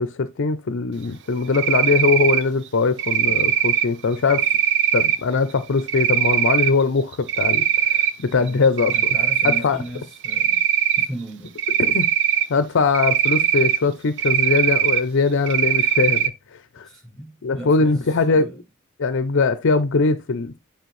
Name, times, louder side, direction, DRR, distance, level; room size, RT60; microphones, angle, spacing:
voice 1, 0.0-4.5 4.9-8.9 9.4-9.8 11.8-12.1 12.5-16.9 17.4-18.5 19.0-20.6, left 4 dB, 60° left, 0.5 m, -21 dB
Cricket, 1.5-2.4 3.0-3.8 4.3-5.2 5.9-6.7 7.1-8.1 8.5-9.6 10.2-11.1 11.6-12.4 12.9-13.8 14.2-15.0 15.5-16.3, right 10 dB, 55° right, 0.7 m, -20 dB
voice 2, 8.9-10.6 11.0-11.5 16.8-18.6, right 1 dB, 5° left, 5.6 m, -36 dB
9.4 x 4.4 x 3.2 m
head